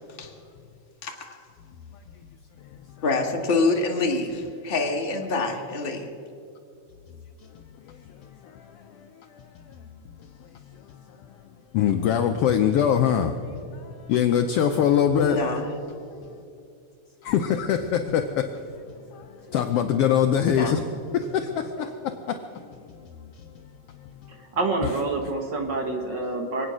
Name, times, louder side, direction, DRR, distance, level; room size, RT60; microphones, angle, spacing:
voice 1, 1.0-1.4 3.0-6.1 15.2-15.7 20.4-20.7, left 3 dB, 65° left, 1 dB, 0.5 m, -26 dB
voice 2, 7.9-9.7 10.9-11.0 11.7-15.4 16.1-16.2 17.2-20.8 21.1-22.7 23.4-23.5, left 8 dB, 85° left, 7 dB, 1.3 m, -24 dB
voice 3, 24.3-26.7, right 3 dB, 50° right, 3 dB, 1.4 m, -27 dB
24.5 x 9.0 x 6.2 m, 2.5 s
omnidirectional pair, 3.4 m